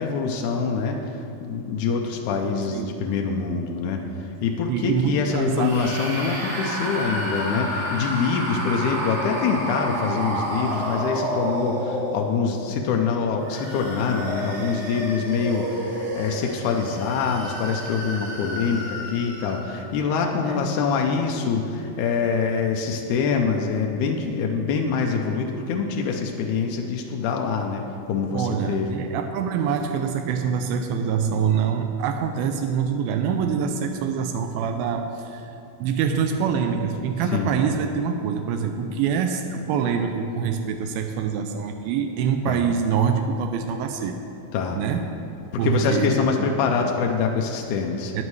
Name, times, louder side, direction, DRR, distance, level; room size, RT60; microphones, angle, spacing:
voice 1, 0.0-27.8 28.1-28.9 37.3-37.5 42.5-42.6 44.5-44.8 45.5-48.1, left 5 dB, 80° left, 2 dB, 1.8 m, -25 dB
voice 2, 4.7-5.8 20.4-20.7 28.3-35.5 35.8-44.2 44.7-45.2 45.6-46.3 48.1-48.2, right 7 dB, 85° right, 5 dB, 2.4 m, -25 dB
sound 1, 5.5-12.6 13.3-19.8, equal, 55° right, 3.6 m, -30 dB
14.5 x 9.7 x 3.2 m, 2.7 s
omnidirectional pair, 4.2 m